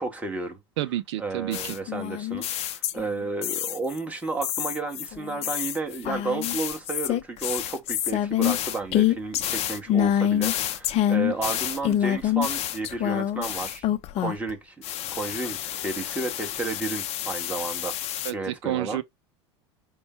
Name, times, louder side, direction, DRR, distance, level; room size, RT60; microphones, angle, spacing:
voice 1, 0.0-0.6 1.2-13.9 14.2-14.7 15.1-19.0, right 3 dB, 10° right, 1.5 m, -32 dB
voice 2, 0.8-1.8 18.2-19.0, right 14 dB, 75° right, 0.5 m, -30 dB
sound 1, 1.5-3.1 3.4-4.0 4.4-14.5 14.8-18.3, left 11 dB, 45° left, 0.6 m, -27 dB
5.3 x 2.3 x 4.3 m
hypercardioid pair, 95°, 15 cm